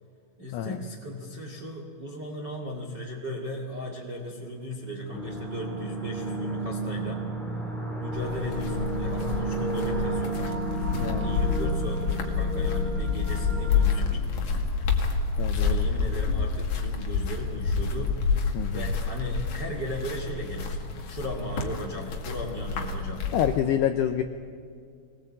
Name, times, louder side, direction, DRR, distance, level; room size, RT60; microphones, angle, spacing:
voice 1, 0.4-7.2 8.0-10.5 11.2-14.5 15.5-20.8 21.1-23.3, equal, 45° right, 1 dB, 1.4 m, -37 dB
sound 1, 5.1-14.8, right 2 dB, ahead, 1.2 m, -32 dB
sound 2, 8.1-23.6, left 5 dB, 50° left, 2.8 m, -28 dB
voice 2, 10.9-11.4 15.4-15.9 18.5-18.9 23.3-24.2, left 10 dB, 85° left, 8 dB, 2.3 m, -27 dB
23.5 x 19.5 x 8.6 m, 2.2 s
omnidirectional pair, 5.7 m